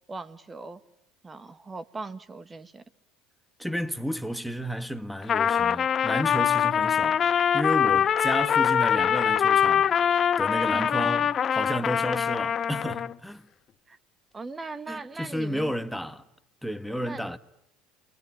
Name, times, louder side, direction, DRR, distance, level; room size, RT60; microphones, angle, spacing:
voice 1, 0.1-0.8 1.2-2.8 10.7-10.9 13.9-14.0 14.3-15.7 17.0-17.2, right 3 dB, 20° right, 2.0 m, -39 dB
voice 2, 3.6-9.9 10.4-13.5 14.9-16.3 16.6-17.4, equal, ahead, 1.9 m, -32 dB
Trumpet, 5.2-13.1, left 8 dB, 40° left, 1.1 m, -23 dB
28.5 x 22.5 x 9.1 m
supercardioid pair, 90°, 0 cm